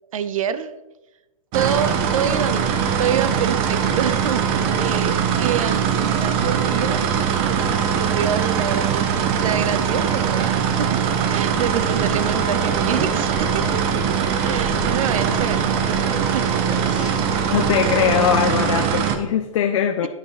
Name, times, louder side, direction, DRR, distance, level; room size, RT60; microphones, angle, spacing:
voice 1, 0.1-0.7 1.5-4.5 4.8-7.1 7.5-14.1 14.4-16.2 20.0-20.1, right 8 dB, 75° right, 13 dB, 0.7 m, -27 dB
sound 1, 1.5-19.2, right 7 dB, 35° right, 1.0 m, -21 dB
sound 2, 11.5-18.1, right 1 dB, 5° right, 1.6 m, -34 dB
voice 2, 17.5-20.1, left 9 dB, 60° left, 6 dB, 0.7 m, -21 dB
9.3 x 6.3 x 4.8 m, 1.0 s
hypercardioid pair, 135°, 18 cm